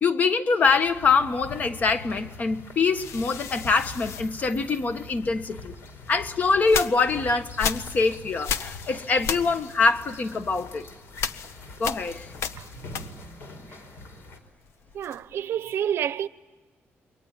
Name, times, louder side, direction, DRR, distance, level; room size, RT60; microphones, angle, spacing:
voice 1, 0.0-5.7 6.1-10.8 11.8-12.3, left 4 dB, 35° left, 1.4 m, -24 dB
sound 1, 0.6-14.4, left 2 dB, 65° left, 4.6 m, -43 dB
sound 2, 3.0-5.2 5.8-13.5 13.8-15.4, left 7 dB, 90° left, 1.0 m, -35 dB
voice 2, 12.5-13.4 14.9-16.3, right 9 dB, 60° right, 0.8 m, -30 dB
28.0 x 23.5 x 9.1 m
cardioid pair, 175°, 5 cm